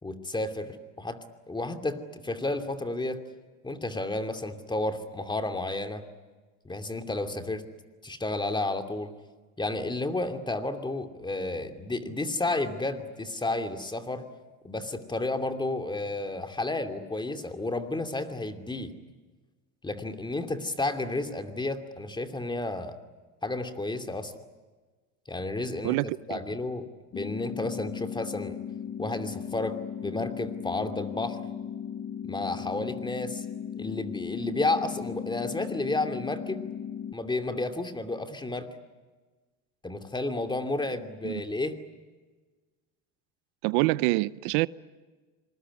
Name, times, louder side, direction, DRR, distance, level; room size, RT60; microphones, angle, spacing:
voice 1, 0.0-1.2 1.5-3.2 3.6-6.0 6.6-7.6 8.0-9.1 9.6-14.3 14.6-18.9 19.8-22.9 23.4-24.3 25.3-26.0 26.3-26.9 27.1-28.6 29.0-31.4 32.2-33.5 33.8-36.7 37.1-38.7 39.8-41.8, left 2 dB, 15° left, 2.7 m, -31 dB
voice 2, 25.8-26.4 41.2-41.4 43.6-44.7, right 21 dB, 85° right, 0.7 m, -26 dB
sound 1, 27.1-37.1, left 8 dB, 35° left, 0.9 m, -37 dB
26.5 x 21.0 x 9.8 m
supercardioid pair, 110°, 34 cm